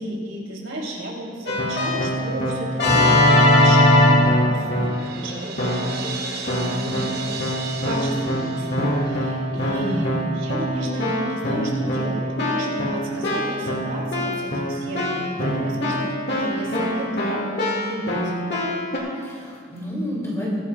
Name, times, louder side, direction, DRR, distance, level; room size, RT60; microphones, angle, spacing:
voice 1, 0.0-7.1 7.8-17.4 17.7-18.3, right 1 dB, 75° right, -3 dB, 3.1 m, -33 dB
Keyboard (musical), 1.5-5.1 5.6-6.1 6.5-19.0, left 1 dB, 55° left, 2.1 m, -22 dB
Crash cymbal, 4.6-9.5, right 4 dB, 50° right, 1.0 m, -35 dB
voice 2, 9.7-10.2 19.2-20.6, equal, 15° left, -5 dB, 2.8 m, -29 dB
22.0 x 11.0 x 2.4 m, 2.1 s
head